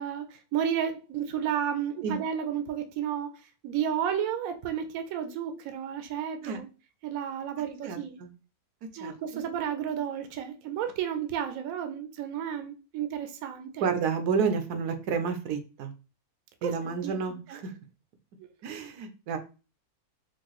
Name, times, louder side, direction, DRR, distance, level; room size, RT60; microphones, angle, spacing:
voice 1, 0.0-3.3 3.6-6.7 7.0-8.2 9.0-13.9 16.6-16.7 17.0-17.1 17.5-17.6, right 9 dB, 70° right, 1.0 m, -32 dB
voice 2, 7.8-8.3 9.0-9.4 13.8-15.9 16.6-17.7 18.6-19.4, right 5 dB, 85° right, 1.2 m, -30 dB
4.5 x 2.5 x 3.0 m
omnidirectional pair, 1.6 m